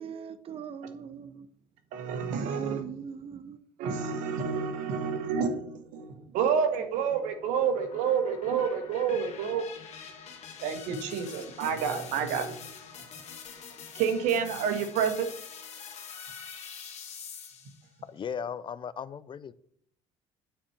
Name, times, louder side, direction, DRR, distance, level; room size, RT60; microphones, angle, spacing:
voice 1, 0.0-1.5 2.4-3.6, right 8 dB, 45° right, 0.8 m, -40 dB
voice 2, 1.9-2.8 3.8-9.7 10.6-12.6 14.0-15.3, right 6 dB, 75° right, 1.6 m, -29 dB
sound 1, 6.7-17.9, left 7 dB, 55° left, 1.8 m, -45 dB
voice 3, 18.1-19.5, left 7 dB, 35° left, 0.5 m, -37 dB
9.1 x 4.3 x 7.1 m
supercardioid pair, 80°, 13 cm